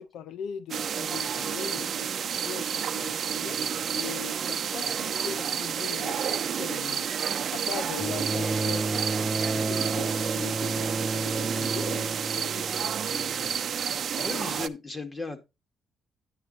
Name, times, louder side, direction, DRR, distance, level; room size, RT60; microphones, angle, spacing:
voice 1, 0.0-7.1 7.5-13.6 14.2-14.7, left 9 dB, 80° left, 0.6 m, -41 dB
sound 1, 0.7-14.7, right 8 dB, 55° right, 0.7 m, -30 dB
Bowed string instrument, 8.0-13.5 14.6-14.7, right 3 dB, 20° right, 0.4 m, -32 dB
voice 2, 14.2-15.4, left 3 dB, 25° left, 2.1 m, -35 dB
9.7 x 9.7 x 2.7 m
cardioid pair, 90°, 0 cm